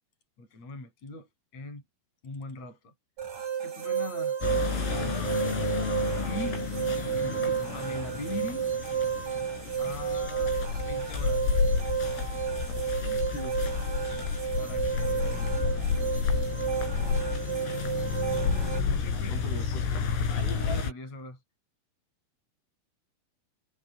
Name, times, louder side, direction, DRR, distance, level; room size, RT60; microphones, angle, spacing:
voice 1, 0.4-1.3 1.5-1.8 2.2-2.9 3.5-5.2 6.3-6.6 7.0-8.7 9.8-11.6 14.6-16.4 18.7-19.5 20.6-21.4, left 2 dB, 30° left, 8.9 m, -41 dB
sound 1, 3.2-18.8, right 8 dB, 40° right, 7.0 m, -32 dB
sound 2, 4.4-20.9, left 5 dB, 80° left, 9.1 m, -30 dB
voice 2, 7.1-7.4 13.0-13.5 19.3-20.1, left 1 dB, 50° left, 9.9 m, -42 dB
omnidirectional pair, 5.9 m